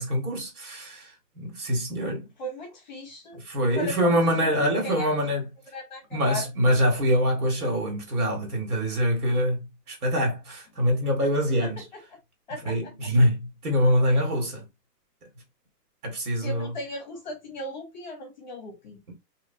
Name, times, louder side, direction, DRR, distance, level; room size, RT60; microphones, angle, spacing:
voice 1, 0.0-2.3 3.4-5.5 6.1-11.8 12.6-14.6 16.0-16.7 19.1-19.2, equal, 60° right, 1.9 m, -25 dB
voice 2, 2.4-3.4 3.7-5.2 5.7-6.4 11.6-11.7 12.5-12.8 16.4-19.0, left 1 dB, 30° left, 0.8 m, -37 dB
3.1 x 2.6 x 2.6 m
hypercardioid pair, 170°, 49 cm